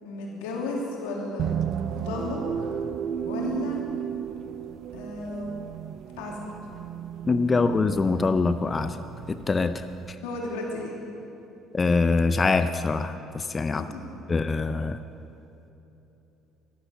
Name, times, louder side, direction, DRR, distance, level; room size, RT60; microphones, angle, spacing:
voice 1, 0.0-1.5 1.9-2.7 3.3-3.8 4.9-5.6 6.2-6.7 10.2-11.0 13.8-14.1, left 2 dB, 85° left, -1 dB, 2.6 m, -34 dB
sound 1, 1.4-10.1, right 9 dB, 60° right, 0.5 m, -34 dB
voice 2, 7.2-9.0 9.3-10.2 11.7-13.8 14.3-15.0, left 4 dB, 30° left, 10 dB, 0.5 m, -24 dB
12.0 x 11.0 x 7.4 m, 3.0 s
supercardioid pair, 75°, 0 cm